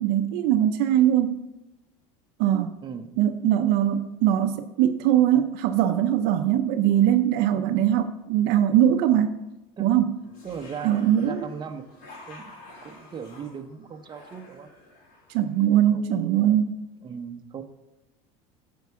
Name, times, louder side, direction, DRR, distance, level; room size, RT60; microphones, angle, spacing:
voice 1, 0.0-1.4 2.4-2.7 3.2-9.3 9.8-10.1 10.8-11.5 15.3-16.8, right 11 dB, 65° right, 8 dB, 0.6 m, -21 dB
voice 2, 2.8-3.2 9.8-10.0 10.4-12.6 12.8-14.7 15.7-16.6 17.0-17.6, right 6 dB, 25° right, 5 dB, 0.8 m, -39 dB
sound 1, 10.2-15.8, left 2 dB, 65° left, 3.3 m, -49 dB
9.3 x 4.7 x 6.8 m, 0.97 s
supercardioid pair, 105°, 17 cm